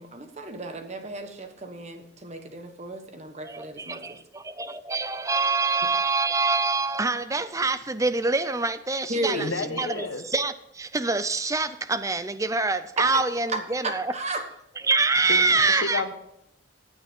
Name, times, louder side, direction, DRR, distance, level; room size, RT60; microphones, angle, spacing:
voice 1, 0.0-4.2 9.1-9.8 13.0-13.2 13.5-14.4, right 2 dB, 35° right, 6 dB, 1.3 m, -33 dB
voice 2, 3.4-14.1 14.8-16.0, right 3 dB, 15° right, 13 dB, 0.5 m, -25 dB
voice 3, 9.4-10.2 15.3-16.1, left 3 dB, 70° left, 7 dB, 1.4 m, -31 dB
15.5 x 8.9 x 3.7 m, 0.80 s
head